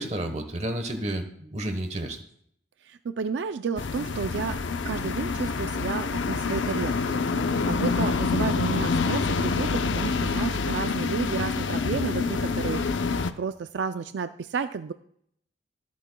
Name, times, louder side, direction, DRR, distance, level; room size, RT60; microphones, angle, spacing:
voice 1, 0.0-2.2, right 1 dB, 35° right, 6 dB, 1.1 m, -31 dB
voice 2, 2.8-4.6 4.8-7.2 7.6-13.0 13.4-14.9, right 5 dB, 75° right, 10 dB, 0.4 m, -32 dB
sound 1, 3.8-13.3, left 4 dB, 85° left, 0.6 m, -27 dB
25.0 x 8.4 x 2.3 m, 0.68 s
head